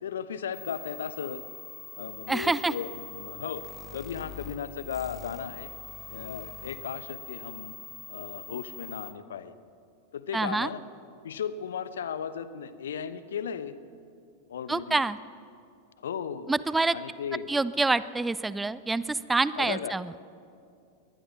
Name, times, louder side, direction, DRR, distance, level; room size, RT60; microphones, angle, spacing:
voice 1, 0.0-1.5 1.9-3.7 3.9-5.7 6.1-7.8 8.1-9.5 10.1-10.8 11.2-13.8 14.5-15.0 16.0-16.5 16.9-17.5 19.5-19.9, left 7 dB, 65° left, 14 dB, 1.0 m, -36 dB
sound 1, 0.5-9.1, left 5 dB, 20° left, 2.6 m, -44 dB
voice 2, 2.3-2.7 10.3-10.7 14.7-15.2 16.5-17.0 17.5-20.1, right 3 dB, 10° right, 17 dB, 0.6 m, -26 dB
21.5 x 20.0 x 6.0 m, 2.5 s
figure-of-eight pair, 90°, 0 cm